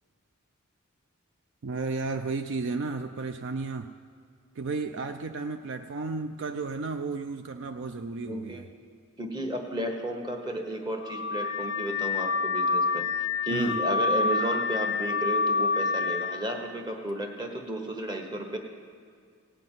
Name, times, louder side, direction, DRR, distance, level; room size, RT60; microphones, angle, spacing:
voice 1, 1.6-3.9 4.6-8.6 13.5-13.8, right 4 dB, 55° right, 7 dB, 0.4 m, -33 dB
voice 2, 8.2-8.6 9.2-18.6, right 1 dB, 20° right, 3 dB, 1.2 m, -33 dB
Car / Alarm, 11.0-16.5, left 4 dB, 40° left, 0.4 m, -27 dB
17.0 x 5.9 x 9.1 m, 2.1 s
head